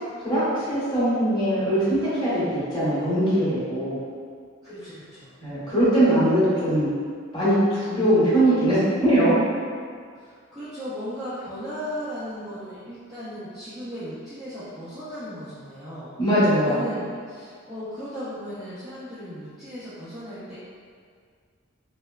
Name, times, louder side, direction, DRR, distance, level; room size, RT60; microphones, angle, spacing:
voice 1, 0.2-4.0 5.4-6.9 7.3-9.3 16.2-16.8, right 1 dB, 20° left, -12 dB, 1.1 m, -21 dB
voice 2, 4.6-5.3 10.2-16.1 16.6-20.6, equal, 5° right, -15 dB, 0.4 m, -36 dB
2.9 x 2.1 x 2.3 m, 2.1 s
head